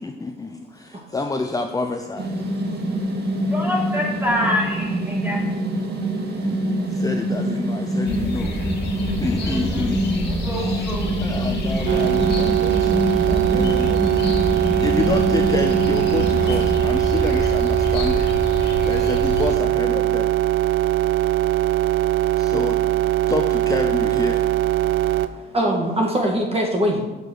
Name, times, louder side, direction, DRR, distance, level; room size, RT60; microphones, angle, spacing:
voice 1, 0.0-2.3 6.4-8.6 9.2-10.8 11.2-14.0 14.8-18.3 18.8-20.3 22.4-22.8 23.3-24.4, left 3 dB, 15° left, 4 dB, 0.6 m, -28 dB
sound 1, 2.2-17.5, right 1 dB, 55° right, 2.0 m, -25 dB
voice 2, 3.5-5.4 9.4-9.9 10.4-11.3, left 1 dB, 10° right, -2 dB, 3.1 m, -26 dB
sound 2, 8.0-19.5, left 2 dB, 60° left, 2.5 m, -28 dB
sound 3, 11.9-25.3, right 14 dB, 85° right, 0.5 m, -21 dB
voice 3, 25.0-27.0, equal, 30° right, 0 dB, 1.6 m, -22 dB
6.9 x 6.5 x 6.3 m, 1.2 s
cardioid pair, 90°, 20 cm